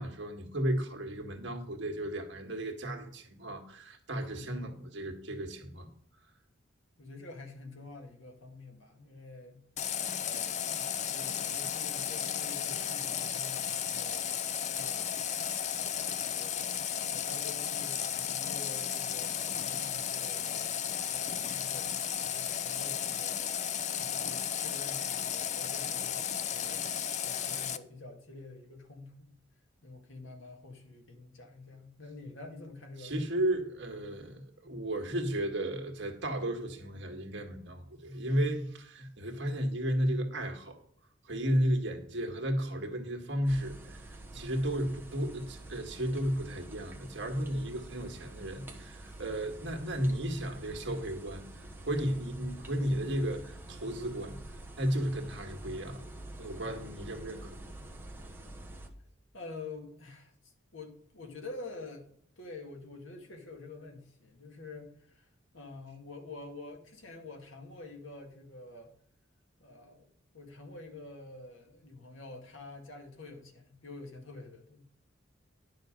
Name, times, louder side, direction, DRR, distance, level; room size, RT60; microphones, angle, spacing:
voice 1, 0.0-5.9 33.0-40.8 41.2-54.4 54.8-56.0 56.4-57.6, equal, 60° right, 1.9 m, -34 dB
voice 2, 7.0-9.6 10.1-14.3 14.7-15.2 15.8-23.5 23.9-26.9 27.2-29.3 29.8-33.4 44.3-44.5 49.0-49.2 56.6-56.9 59.3-62.1 62.4-65.3 65.5-68.9 69.6-70.1 70.3-75.0, left 3 dB, 80° left, 2.1 m, -48 dB
Water tap faucet, 9.8-27.8, left 9 dB, 35° left, 0.5 m, -34 dB
sound 1, 43.4-58.9, right 1 dB, 10° right, 1.2 m, -47 dB
10.5 x 6.7 x 5.3 m
head